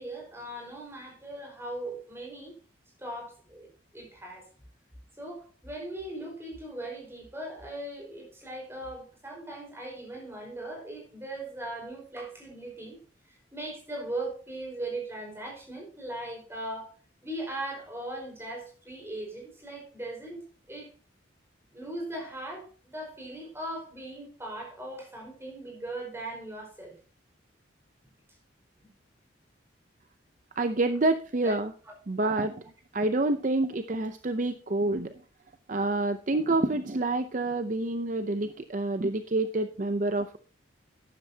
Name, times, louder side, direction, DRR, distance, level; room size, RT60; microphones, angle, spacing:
voice 1, 0.0-2.5 3.0-4.5 5.2-13.0 13.5-16.9 17.2-20.9 21.7-26.9 31.4-31.5 31.8-31.9, right 1 dB, 15° right, 4.8 m, -39 dB
voice 2, 30.6-31.7 32.1-32.6 32.9-35.1 35.7-40.4, right 2 dB, 40° right, 0.6 m, -27 dB
12.5 x 10.5 x 2.8 m
head